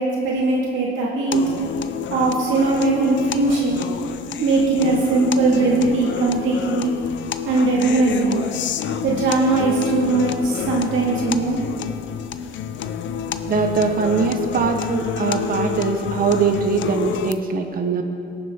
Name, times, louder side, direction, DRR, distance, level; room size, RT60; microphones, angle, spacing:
voice 1, 0.0-1.4 2.1-3.8 4.4-6.9 7.5-8.5 9.0-11.6, right 3 dB, 90° right, -4 dB, 1.9 m, -20 dB
sound 1, 1.3-17.3, left 8 dB, 70° left, 0.5 m, -28 dB
voice 2, 13.3-18.0, right 5 dB, 45° right, 5 dB, 1.0 m, -22 dB
19.0 x 7.1 x 3.5 m, 2.7 s
cardioid pair, 90°, 20 cm